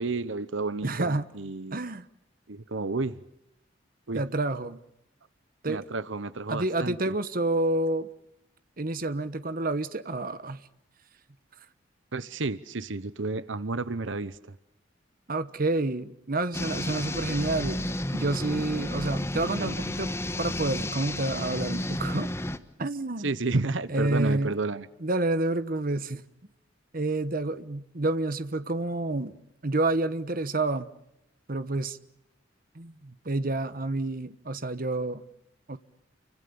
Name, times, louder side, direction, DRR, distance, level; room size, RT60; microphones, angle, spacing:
voice 1, 0.0-1.9 2.5-3.2 4.1-4.2 5.7-7.1 12.1-14.4 19.0-19.1 19.6-19.8 23.2-24.9, right 3 dB, 80° right, 1.0 m, -31 dB
voice 2, 0.8-1.2 1.7-2.1 4.1-4.8 5.6-5.9 6.5-8.1 8.8-10.6 15.3-20.1 20.4-22.3 22.8-23.3 23.9-24.5 25.0-26.2 26.9-30.9 31.5-32.0 32.7-35.2 35.7-35.8, right 2 dB, 50° right, 1.2 m, -29 dB
sound 1, 16.5-22.6, left 1 dB, 15° left, 1.3 m, -32 dB
29.5 x 25.5 x 7.0 m
head